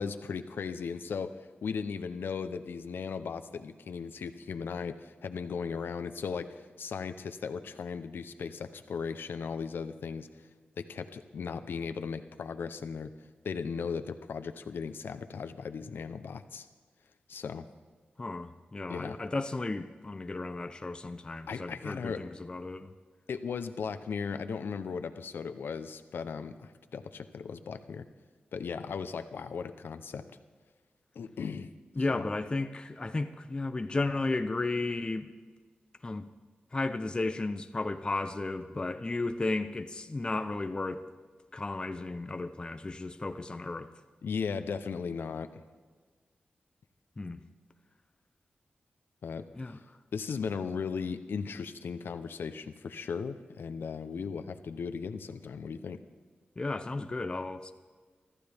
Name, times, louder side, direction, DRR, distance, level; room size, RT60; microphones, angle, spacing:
voice 1, 0.0-10.5 10.8-13.1 13.4-16.7 17.3-17.6 18.9-19.2 21.5-22.2 23.3-28.1 28.5-30.2 31.1-31.7 32.1-32.3 44.2-45.6 49.2-49.8 50.1-56.0, left 5 dB, 80° left, 10 dB, 0.7 m, -37 dB
voice 2, 18.2-22.9 32.0-35.3 36.0-36.3 36.7-41.0 41.5-43.9 47.2-47.4 49.6-49.8 56.6-57.7, left 2 dB, 25° left, 9 dB, 0.6 m, -34 dB
24.5 x 14.0 x 3.5 m, 1.5 s
wide cardioid pair, 110°, 4 cm